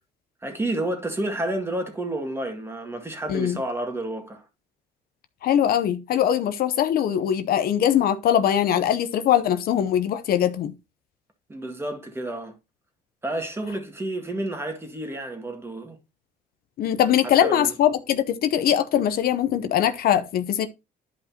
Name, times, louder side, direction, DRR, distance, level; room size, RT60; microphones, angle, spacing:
voice 1, 0.4-4.4 11.5-12.5 13.2-16.0 17.2-17.7, right 1 dB, 15° right, 1.9 m, -30 dB
voice 2, 5.4-10.7 16.8-20.7, left 10 dB, 60° left, 0.8 m, -22 dB
11.0 x 5.2 x 2.9 m
cardioid pair, 110°, 17 cm